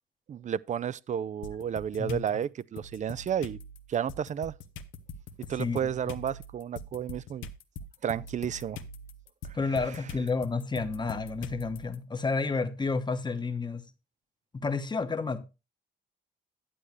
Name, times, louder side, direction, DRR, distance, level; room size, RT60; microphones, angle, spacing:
voice 1, 0.3-3.6 3.9-4.5 5.5-7.5 8.0-8.8, right 9 dB, 40° right, 0.4 m, -32 dB
sound 1, 1.4-2.3 2.8-12.0, left 3 dB, 90° left, 0.8 m, -43 dB
voice 2, 9.5-13.8 14.5-15.5, left 4 dB, 20° left, 1.0 m, -30 dB
10.0 x 8.2 x 3.1 m
cardioid pair, 90°, 20 cm